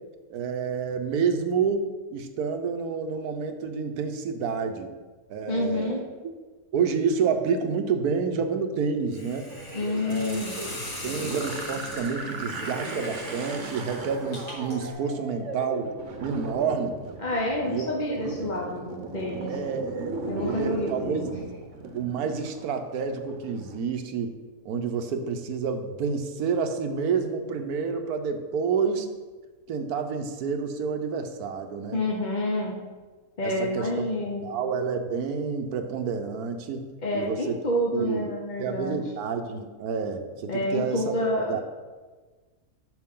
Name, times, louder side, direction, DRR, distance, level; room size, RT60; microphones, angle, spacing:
voice 1, 0.3-4.9 5.3-6.1 6.7-9.5 10.1-10.4 11.0-15.9 16.2-17.0 17.7-17.9 18.2-18.4 19.5-21.3 21.9-24.3 24.6-29.1 29.7-32.0 33.4-36.9 37.1-37.6 37.9-38.3 38.6-41.1 41.5-41.6, right 5 dB, 80° right, 7 dB, 1.3 m, -29 dB
voice 2, 5.5-6.0 9.7-10.6 17.2-19.5 20.3-21.3 31.9-32.7 33.4-34.4 37.0-39.0 40.5-41.6, left 1 dB, 35° left, -3 dB, 0.9 m, -28 dB
Hiss, 9.1-14.9, left 1 dB, 60° left, 2.9 m, -39 dB
sound 1, 9.5-23.8, right 3 dB, 55° right, 1.2 m, -38 dB
10.5 x 6.7 x 3.7 m, 1.3 s
omnidirectional pair, 1.6 m